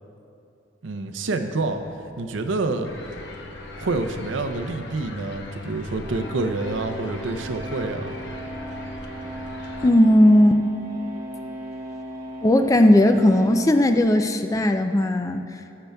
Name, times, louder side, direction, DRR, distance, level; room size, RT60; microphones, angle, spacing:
voice 1, 0.8-1.8 2.2-2.9 3.8-8.1, right 3 dB, 85° right, 6 dB, 0.6 m, -27 dB
sound 1, 1.6-13.8, right 1 dB, 35° right, 1.1 m, -38 dB
sound 2, 2.8-9.9, left 2 dB, 65° left, 0.9 m, -38 dB
voice 2, 9.8-10.6 12.4-15.4, left 1 dB, 15° left, 7 dB, 0.3 m, -17 dB
19.5 x 6.8 x 2.3 m, 2.7 s
head